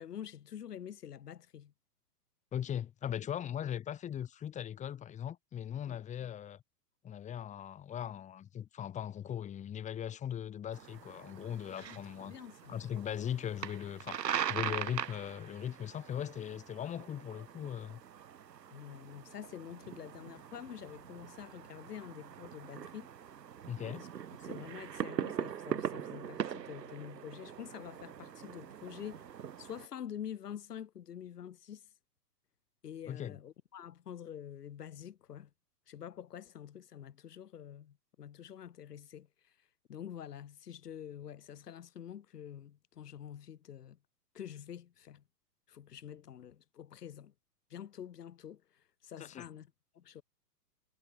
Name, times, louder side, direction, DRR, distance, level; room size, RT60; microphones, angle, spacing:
voice 1, 0.0-1.7 5.9-6.0 11.8-12.8 18.7-23.1 24.4-31.9 32.8-35.5 35.9-39.5 39.9-44.0 44.3-45.2 45.7-47.3 47.7-50.2, left 9 dB, 70° left, 7.9 m, -47 dB
voice 2, 2.5-6.6 7.0-12.3 12.7-18.0 23.7-24.1 33.1-33.4 49.2-49.4, left 9 dB, 15° left, 2.9 m, -39 dB
sound 1, 10.7-29.9, right 9 dB, 80° right, 2.8 m, -42 dB
hypercardioid pair, 150°, 49 cm